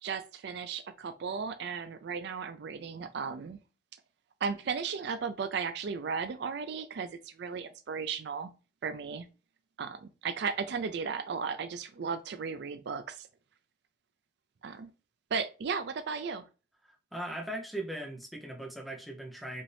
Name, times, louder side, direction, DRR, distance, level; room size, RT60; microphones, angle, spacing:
voice 1, 0.0-3.6 4.4-8.5 8.8-9.3 9.8-13.3 14.6-14.9 15.3-16.4, right 5 dB, 60° right, 9 dB, 0.4 m, -35 dB
voice 2, 16.8-19.6, right 1 dB, ahead, 0 dB, 0.7 m, -39 dB
5.3 x 2.6 x 3.3 m, 0.33 s
head